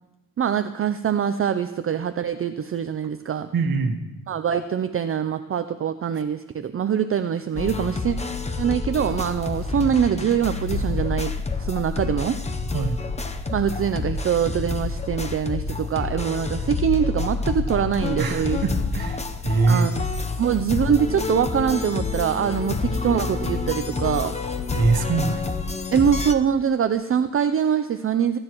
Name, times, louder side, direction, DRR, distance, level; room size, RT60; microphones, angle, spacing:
voice 1, 0.4-3.5 4.3-8.2 8.6-11.3 11.6-12.4 13.5-18.6 19.7-20.0 20.4-24.3 25.9-28.4, right 8 dB, 35° right, 9 dB, 0.5 m, -23 dB
voice 2, 3.5-4.0 12.7-13.0 18.2-19.9 24.7-25.5, right 4 dB, 60° right, 5 dB, 1.5 m, -23 dB
sound 1, 7.6-26.3, left 4 dB, 15° left, 0.8 m, -28 dB
27.5 x 9.6 x 3.1 m, 1.1 s
cardioid pair, 105°, 41 cm